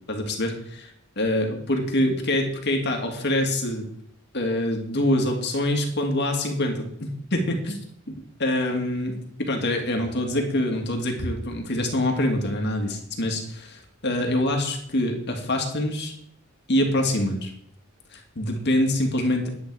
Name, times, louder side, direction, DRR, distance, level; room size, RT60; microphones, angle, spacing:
voice 1, 0.1-0.5 1.2-3.9 4.3-7.8 8.1-16.1 16.7-17.5 18.1-19.5, left 1 dB, 55° left, 3 dB, 2.0 m, -25 dB
11.0 x 8.6 x 4.7 m, 0.70 s
head